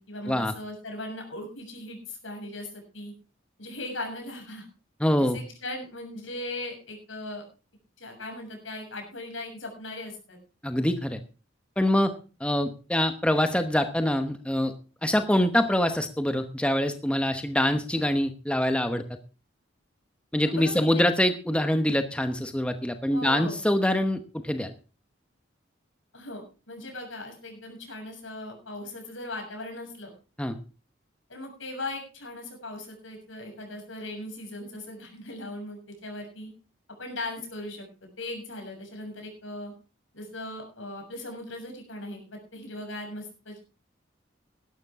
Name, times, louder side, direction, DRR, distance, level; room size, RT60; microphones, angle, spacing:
voice 1, 0.0-3.1 3.6-4.7 5.2-7.4 8.0-10.4 20.5-21.0 23.1-23.6 26.1-30.1 31.3-36.5 37.0-39.7 40.1-43.6, left 1 dB, 85° left, 2 dB, 6.9 m, -38 dB
voice 2, 5.0-5.4 10.6-11.2 11.8-12.1 12.4-14.7 15.0-19.0 20.3-24.7 30.4-30.6, left 1 dB, 5° left, 8 dB, 0.9 m, -25 dB
16.5 x 12.5 x 3.6 m, 0.35 s
head